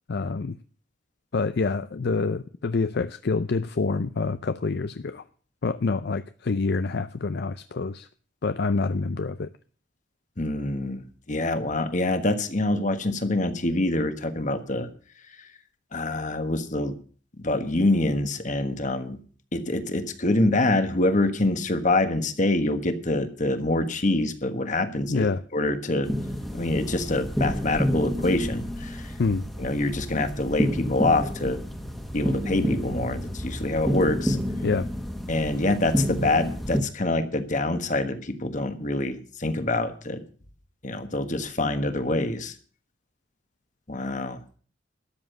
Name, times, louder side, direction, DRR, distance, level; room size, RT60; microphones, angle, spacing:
voice 1, 0.1-0.6 1.3-5.2 5.6-8.1 8.4-9.5 25.1-25.4 29.2-29.4 34.6-34.9, left 4 dB, 60° left, 11 dB, 0.5 m, -26 dB
voice 2, 10.4-11.0 11.3-14.9 15.9-16.9 17.4-19.2 19.5-25.3 25.5-26.1 26.5-29.1 29.6-31.6 32.1-34.4 35.3-40.2 40.8-42.5 43.9-44.4, left 2 dB, 40° left, 9 dB, 1.4 m, -25 dB
sound 1, 26.0-36.8, equal, ahead, 1.5 m, -29 dB
13.0 x 7.4 x 7.8 m, 0.44 s
head